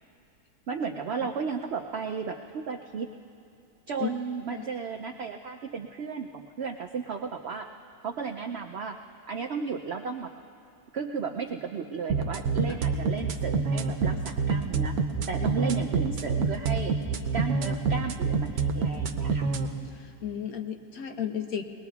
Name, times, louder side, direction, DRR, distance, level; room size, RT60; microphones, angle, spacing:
voice 1, 0.7-3.1 3.9-7.7 8.0-9.0 9.3-10.3 10.9-14.9 15.3-17.0 17.3-19.5, right 5 dB, 85° right, 4 dB, 0.5 m, -34 dB
sound 1, 12.1-19.7, right 5 dB, 70° right, 1.1 m, -26 dB
voice 2, 20.2-21.6, left 9 dB, 65° left, 6 dB, 1.2 m, -33 dB
22.5 x 19.5 x 2.4 m, 2.6 s
omnidirectional pair, 1.7 m